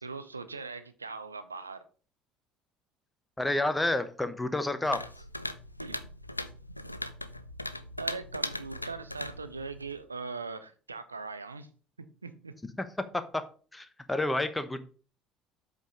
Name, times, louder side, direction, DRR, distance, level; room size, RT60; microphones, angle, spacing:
voice 1, 0.0-1.8 5.8-6.0 8.0-11.7 12.2-12.6, right 4 dB, 85° right, 11 dB, 0.6 m, -40 dB
voice 2, 3.4-5.1 12.8-12.9 13.7-14.8, left 2 dB, 10° left, 10 dB, 1.0 m, -29 dB
sound 1, 4.8-10.0, left 1 dB, 90° left, 0.4 m, -39 dB
8.1 x 5.0 x 5.2 m, 0.38 s
figure-of-eight pair, 60°, 0 cm